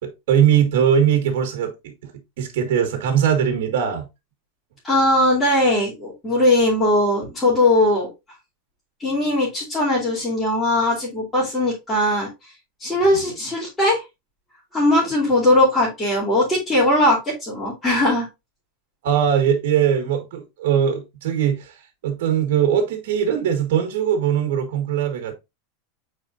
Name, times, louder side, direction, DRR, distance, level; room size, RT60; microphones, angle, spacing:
voice 1, 0.0-2.1 2.4-4.1 19.0-21.8 22.0-25.3, right 8 dB, 70° right, 1.8 m, -20 dB
voice 2, 4.8-8.1 9.0-12.3 12.8-14.0 14.7-18.3, left 1 dB, 10° left, 2.9 m, -19 dB
8.4 x 4.4 x 2.6 m
supercardioid pair, 170°, 0 cm